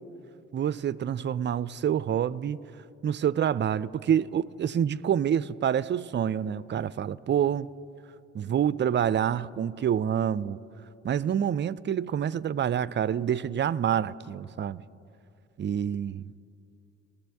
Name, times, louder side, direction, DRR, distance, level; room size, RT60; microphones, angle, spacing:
voice 1, 0.5-2.6 3.0-7.7 8.3-10.6 11.0-14.8 15.6-16.3, right 9 dB, 30° right, 0.4 m, -27 dB
20.0 x 6.9 x 3.5 m
hypercardioid pair, 40°, 40 cm